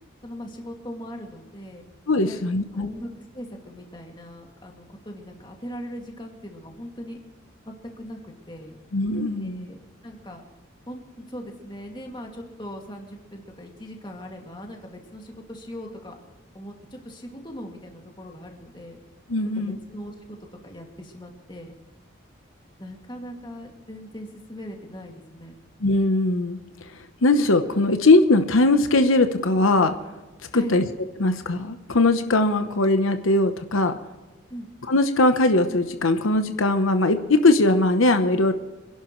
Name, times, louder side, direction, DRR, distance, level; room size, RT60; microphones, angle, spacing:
voice 1, 0.2-1.9 2.2-2.4 2.7-7.2 7.7-8.8 9.4-10.4 10.9-16.2 16.5-19.0 19.6-20.4 20.6-21.7 22.8-25.6 30.5-30.8 34.5-34.7, equal, 25° left, 1 dB, 2.4 m, -39 dB
voice 2, 2.1-2.9 8.9-9.7 19.3-19.8 25.8-26.9 27.2-29.9 30.5-30.8 31.2-33.9 34.9-38.5, left 2 dB, 85° left, 8 dB, 1.0 m, -20 dB
27.0 x 11.0 x 3.2 m, 1.2 s
head